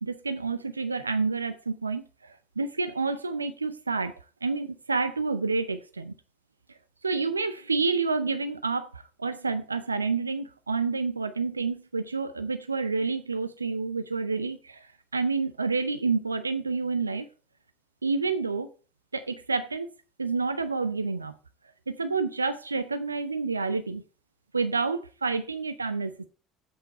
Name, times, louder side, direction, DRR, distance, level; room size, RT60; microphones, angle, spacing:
voice 1, 0.0-4.1 4.4-6.2 7.0-17.3 18.0-18.7 19.1-19.9 20.2-21.3 21.9-24.0 24.5-26.3, right 4 dB, 90° right, 0.5 m, -29 dB
7.9 x 7.9 x 4.2 m
figure-of-eight pair, 60°, 0 cm